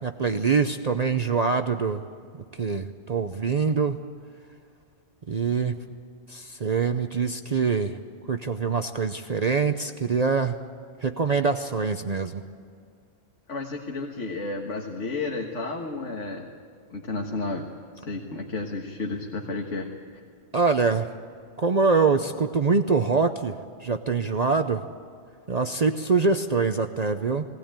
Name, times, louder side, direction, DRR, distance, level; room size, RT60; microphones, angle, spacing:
voice 1, 0.0-2.0 2.6-4.0 5.3-5.8 6.3-8.0 8.3-10.6 11.0-12.4 20.5-21.1 21.6-23.6 23.8-24.8 25.5-27.5, right 4 dB, 40° right, 7 dB, 0.7 m, -24 dB
voice 2, 13.5-16.5 16.9-17.7 17.9-19.9, left 3 dB, 85° left, 1 dB, 1.9 m, -32 dB
20.0 x 18.0 x 8.9 m, 2.2 s
omnidirectional pair, 1.2 m